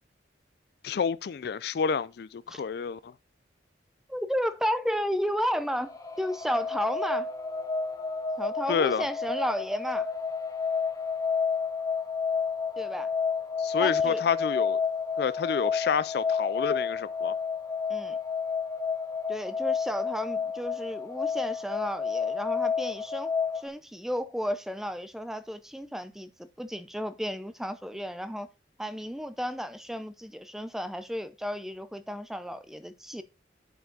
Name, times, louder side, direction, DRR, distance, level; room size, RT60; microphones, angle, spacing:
voice 1, 0.8-3.1 8.7-9.1 13.6-14.8 15.2-17.3, left 6 dB, 60° left, 0.4 m, -29 dB
voice 2, 4.1-7.3 8.4-10.1 12.8-13.1 13.8-14.2 17.9-18.2 19.3-23.3 23.6-26.3 26.6-28.5 28.8-33.2, equal, ahead, 0.6 m, -33 dB
sound 1, 5.5-23.7, left 5 dB, 20° left, 1.2 m, -30 dB
11.0 x 4.8 x 4.0 m
head